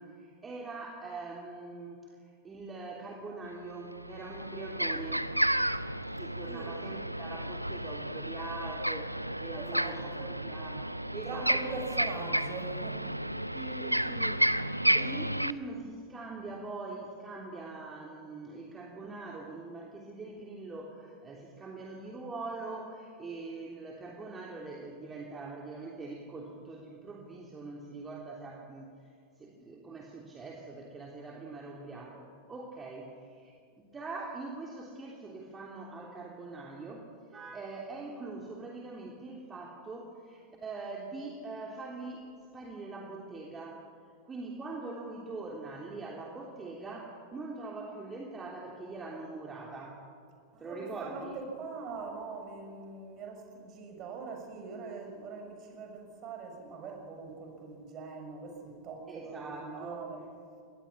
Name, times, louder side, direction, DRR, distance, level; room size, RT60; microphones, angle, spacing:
voice 1, 0.0-5.3 6.2-12.0 13.5-29.1 29.4-42.3 42.5-43.8 44.2-50.0 50.6-51.4 59.1-60.0, right 3 dB, 20° right, -1 dB, 3.2 m, -43 dB
sound 1, 3.4-3.5 3.9-15.5, right 1 dB, 90° right, 0.6 m, -32 dB
voice 2, 6.5-6.8 9.5-10.4 11.0-13.2 50.5-60.2, right 4 dB, 35° right, 3 dB, 6.7 m, -42 dB
24.0 x 20.0 x 10.0 m, 2.3 s
figure-of-eight pair, 90°, 0 cm